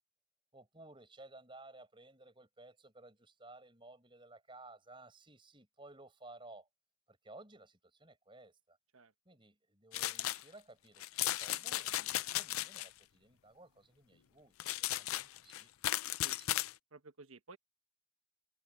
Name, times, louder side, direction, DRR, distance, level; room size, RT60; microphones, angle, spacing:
voice 1, 0.5-6.7 7.1-8.8 9.3-15.7 16.4-16.6, right 2 dB, 25° right, 5.8 m, -57 dB
sound 1, 9.9-10.4 11.0-12.9 14.6-16.7, left 14 dB, 85° left, 0.5 m, -36 dB
voice 2, 16.9-17.6, right 3 dB, 80° right, 1.5 m, -55 dB
head